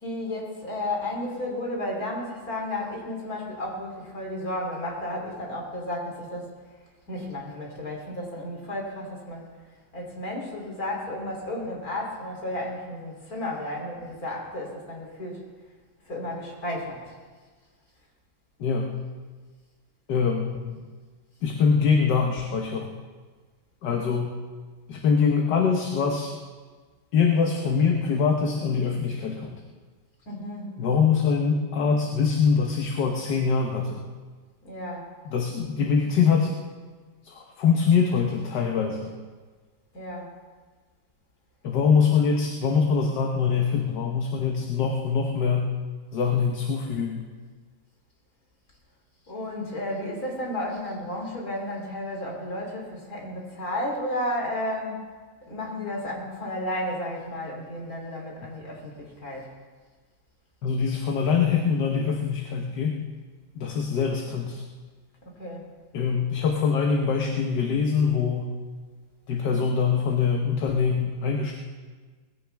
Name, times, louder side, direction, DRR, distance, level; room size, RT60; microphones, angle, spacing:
voice 1, 0.0-6.5 7.1-9.4 9.9-15.4 16.1-17.1 30.3-30.7 34.6-35.0 39.9-40.3 49.3-55.0 55.5-59.5 65.4-65.6, left 1 dB, 55° left, -1 dB, 3.8 m, -33 dB
voice 2, 18.6-19.0 20.1-20.9 21.4-23.0 23.8-24.3 24.9-26.4 27.1-29.6 30.8-34.0 35.3-36.5 37.2-39.2 41.6-45.7 46.1-47.3 60.6-63.0 63.6-64.6 65.9-68.5 69.3-71.5, left 6 dB, 75° left, 2 dB, 1.7 m, -24 dB
20.5 x 15.5 x 3.5 m, 1.4 s
omnidirectional pair, 1.9 m